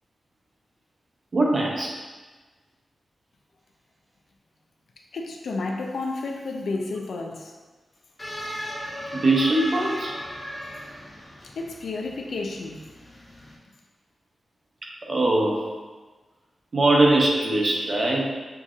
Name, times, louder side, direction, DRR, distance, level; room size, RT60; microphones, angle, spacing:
voice 1, 1.3-1.9 9.1-10.1 15.1-15.6 16.7-18.3, right 2 dB, 45° right, -3 dB, 0.8 m, -21 dB
voice 2, 5.1-7.5 11.6-12.8, left 3 dB, 80° left, 1 dB, 0.5 m, -31 dB
sound 1, 8.2-13.5, equal, 25° left, 1.4 m, -37 dB
6.7 x 2.7 x 2.4 m, 1.3 s
wide cardioid pair, 145°, 0 cm